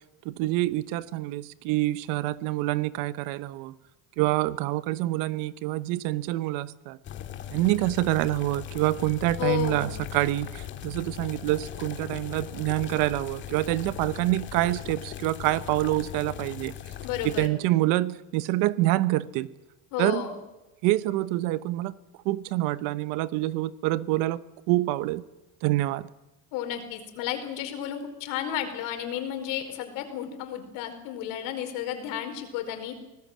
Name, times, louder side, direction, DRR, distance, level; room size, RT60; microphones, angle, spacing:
voice 1, 0.2-3.7 4.2-7.0 7.5-16.7 17.2-19.5 20.0-20.2 20.8-21.9 22.2-24.4 24.7-25.2 25.6-26.1, right 17 dB, 55° right, 16 dB, 1.1 m, -26 dB
sound 1, 7.0-17.5, left 11 dB, 30° left, 1.9 m, -39 dB
voice 2, 9.4-9.9 17.0-17.5 19.9-20.4 26.5-33.0, left 10 dB, 55° left, 6 dB, 4.9 m, -32 dB
25.0 x 19.0 x 7.5 m, 0.98 s
cardioid pair, 170°, 38 cm